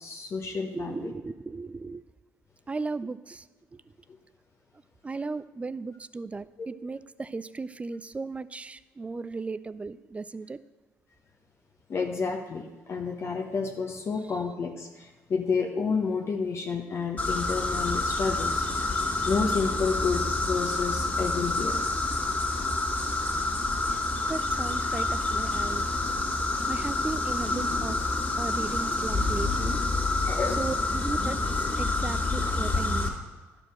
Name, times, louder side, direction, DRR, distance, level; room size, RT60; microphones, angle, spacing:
voice 1, 0.0-1.1 11.9-18.6 19.3-21.8 30.2-30.6, left 5 dB, 45° left, 2 dB, 1.0 m, -30 dB
voice 2, 0.7-2.0 2.7-3.4 5.0-10.6 24.3-25.8 26.7-29.8 30.6-31.4 31.8-33.1, right 3 dB, 20° right, 16 dB, 0.4 m, -36 dB
sound 1, 17.2-33.1, left 2 dB, 25° left, 2.2 m, -28 dB
11.0 x 5.1 x 6.2 m, 1.2 s
supercardioid pair, 70°, 6 cm